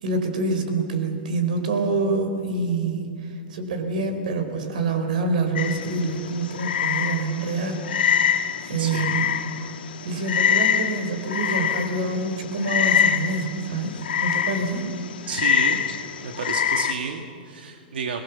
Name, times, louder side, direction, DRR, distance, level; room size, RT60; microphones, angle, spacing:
voice 1, 0.0-7.8 8.0-9.3 10.0-14.8, right 3 dB, 55° right, 6 dB, 4.3 m, -26 dB
Frog, 5.6-16.9, left 8 dB, 80° left, 2.8 m, -25 dB
voice 2, 8.8-9.2 15.3-15.9 16.2-18.2, right 5 dB, 80° right, 3 dB, 2.0 m, -31 dB
29.0 x 22.0 x 7.1 m, 2.4 s
hypercardioid pair, 175°, 5 cm